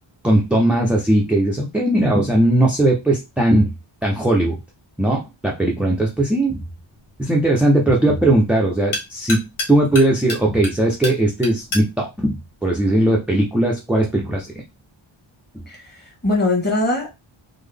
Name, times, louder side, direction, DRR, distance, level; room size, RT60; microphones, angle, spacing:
voice 1, 0.2-3.7 4.0-4.6 5.0-6.6 7.2-14.6, right 1 dB, 5° right, -2 dB, 0.4 m, -18 dB
sound 1, 6.2-13.5, left 2 dB, 80° left, 1.5 m, -34 dB
voice 2, 15.7-17.2, left 2 dB, 20° left, 1 dB, 1.2 m, -22 dB
3.7 x 2.0 x 3.3 m, 0.24 s
wide cardioid pair, 170°, 48 cm